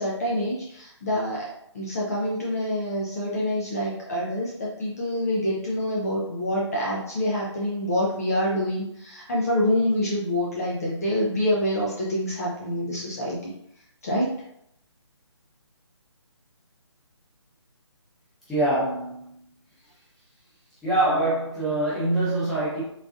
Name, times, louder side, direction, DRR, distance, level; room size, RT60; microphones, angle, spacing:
voice 1, 0.0-13.4 14.0-14.3, left 1 dB, 30° left, -4 dB, 0.5 m, -26 dB
voice 2, 18.5-19.4 20.8-22.8, right 2 dB, 5° left, -10 dB, 0.8 m, -24 dB
3.8 x 2.3 x 2.5 m, 0.73 s
figure-of-eight pair, 155°, 16 cm